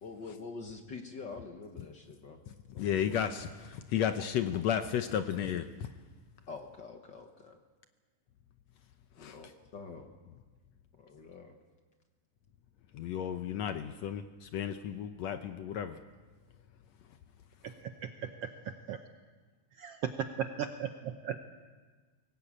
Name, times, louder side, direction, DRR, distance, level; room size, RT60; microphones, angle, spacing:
voice 1, 0.0-2.4 2.7-3.0 6.5-7.6 9.2-10.1 10.9-11.5, left 4 dB, 55° left, 4 dB, 1.2 m, -46 dB
voice 2, 2.8-5.9 9.2-9.4 12.9-16.0, left 9 dB, 75° left, 9 dB, 1.6 m, -33 dB
voice 3, 19.8-21.4, right 8 dB, 85° right, 6 dB, 1.3 m, -36 dB
23.5 x 17.5 x 8.7 m, 1.4 s
omnidirectional pair, 3.9 m